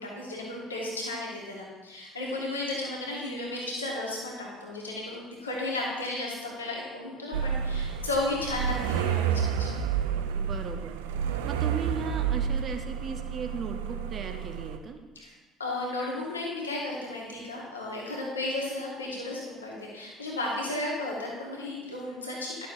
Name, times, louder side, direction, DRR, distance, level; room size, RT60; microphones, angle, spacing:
voice 1, 0.0-9.7 15.1-15.3 15.6-22.7, left 2 dB, 85° left, -3 dB, 1.5 m, -34 dB
sound 1, 7.3-14.8, right 8 dB, 70° right, 0.4 m, -30 dB
voice 2, 10.3-11.1 11.4-15.0, right 5 dB, 40° right, 5 dB, 0.9 m, -37 dB
11.0 x 6.8 x 2.6 m, 1.2 s
figure-of-eight pair, 55°, 0 cm